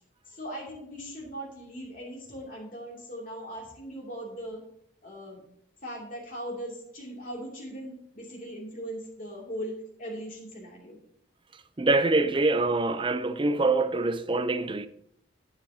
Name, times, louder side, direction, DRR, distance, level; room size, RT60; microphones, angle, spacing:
voice 1, 0.3-4.6 5.0-5.4 5.8-11.0, equal, 45° left, 2.7 m, -39 dB
voice 2, 11.8-14.9, right 3 dB, 25° right, 0.6 m, -25 dB
11.5 x 10.0 x 2.8 m
head